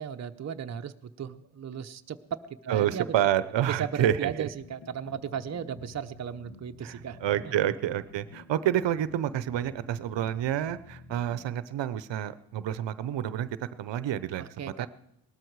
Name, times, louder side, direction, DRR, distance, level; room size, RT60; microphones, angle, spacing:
voice 1, 0.0-3.1 3.6-7.5 14.4-14.9, right 8 dB, 40° right, 7 dB, 0.7 m, -36 dB
voice 2, 2.7-4.5 6.8-13.5 13.8-14.9, right 11 dB, 75° right, 15 dB, 0.8 m, -29 dB
sound 1, 4.1-11.5, left 3 dB, 65° left, 2.2 m, -49 dB
19.0 x 13.0 x 4.7 m, 0.78 s
cardioid pair, 125°, 44 cm